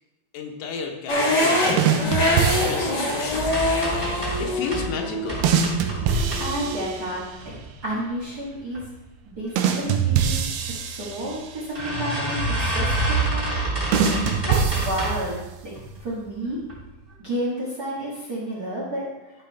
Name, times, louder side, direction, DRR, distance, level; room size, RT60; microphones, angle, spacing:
voice 1, 0.3-3.8 4.4-5.5, left 5 dB, 80° left, 2 dB, 2.8 m, -33 dB
sound 1, 1.1-7.2, left 1 dB, 45° left, 1.4 m, -25 dB
sound 2, 1.8-3.2 5.4-7.4 9.6-11.7 13.9-15.5, right 7 dB, 90° right, 2.7 m, -24 dB
sound 3, 3.3-4.9 5.3-6.9 7.4-8.0 8.4-8.8 9.1-9.2 9.5-9.6 10.6-10.7 11.1-11.2 11.8-15.3 15.8-16.2 16.6-16.8 17.1-17.2, right 2 dB, 10° right, 2.3 m, -28 dB
voice 2, 6.4-8.9 9.2-13.5 14.5-15.7 16.0-16.6 17.2-19.0, right 1 dB, 40° right, -6 dB, 1.4 m, -31 dB
11.5 x 5.9 x 3.4 m, 1.1 s
omnidirectional pair, 4.4 m